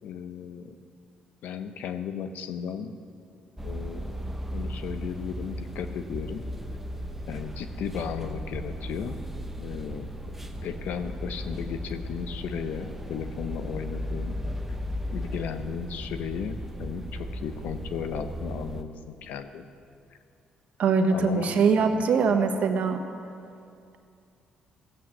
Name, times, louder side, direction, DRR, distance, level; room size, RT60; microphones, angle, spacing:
voice 1, 0.0-0.7 1.4-3.0 3.6-4.2 4.5-6.4 7.3-9.2 9.6-10.3 10.6-14.3 15.1-18.9 19.2-19.7 21.1-22.4, left 7 dB, 75° left, 9 dB, 0.8 m, -35 dB
sound 1, 3.6-18.8, equal, 10° right, 0.9 m, -36 dB
voice 2, 20.8-23.0, right 5 dB, 65° right, 6 dB, 1.2 m, -22 dB
16.0 x 7.8 x 7.4 m, 2.5 s
supercardioid pair, 70°, 3 cm